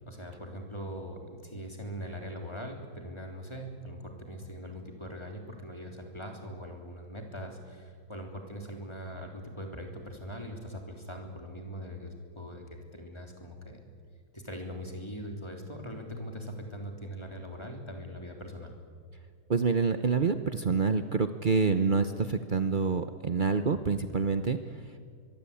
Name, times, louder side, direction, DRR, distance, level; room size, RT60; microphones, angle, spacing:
voice 1, 0.1-13.8 14.3-18.7, equal, 15° left, 3 dB, 3.3 m, -41 dB
voice 2, 19.5-24.6, right 5 dB, 60° right, 9 dB, 0.5 m, -27 dB
23.5 x 23.0 x 8.6 m, 2.1 s
omnidirectional pair, 2.2 m